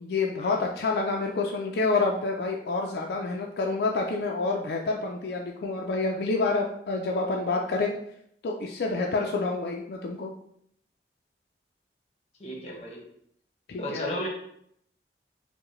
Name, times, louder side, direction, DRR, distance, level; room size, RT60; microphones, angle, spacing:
voice 1, 0.0-7.9 8.4-10.3 13.7-14.1, left 3 dB, 65° left, 0 dB, 0.3 m, -28 dB
voice 2, 12.4-13.0 13.8-14.3, equal, 35° left, 0 dB, 0.7 m, -34 dB
4.6 x 2.1 x 3.0 m, 0.71 s
head